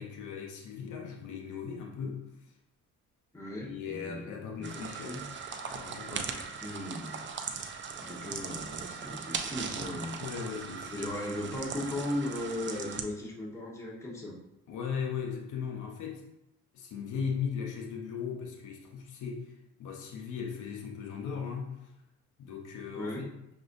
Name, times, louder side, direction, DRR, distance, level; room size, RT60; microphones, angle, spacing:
voice 1, 0.0-2.2 3.6-5.2 5.7-6.5 9.8-11.1 14.7-16.3 16.7-19.5 19.8-21.7 22.4-23.3, left 6 dB, 80° left, 1 dB, 0.8 m, -38 dB
voice 2, 3.3-5.2 6.1-7.2 8.0-10.2 10.9-14.3 22.9-23.3, left 1 dB, 10° left, -4 dB, 1.1 m, -37 dB
sound 1, 4.6-13.0, right 6 dB, 40° right, 0.5 m, -39 dB
6.0 x 2.6 x 2.6 m, 0.85 s
cardioid pair, 90°, 30 cm